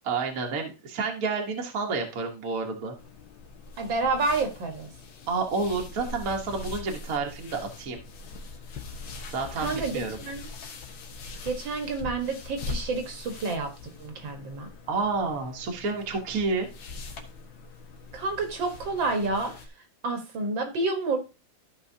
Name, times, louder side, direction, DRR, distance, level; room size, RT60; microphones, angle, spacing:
voice 1, 0.0-3.0 5.3-8.0 9.3-10.2 14.9-16.7, right 4 dB, 50° right, 2 dB, 1.6 m, -29 dB
sound 1, 3.0-19.7, left 4 dB, 75° left, 1.8 m, -42 dB
voice 2, 3.8-4.9 9.6-10.5 11.4-13.7 14.0-14.7 18.1-19.5 20.0-21.2, right 3 dB, 70° right, 5 dB, 2.1 m, -29 dB
13.5 x 5.5 x 2.7 m, 0.29 s
omnidirectional pair, 2.2 m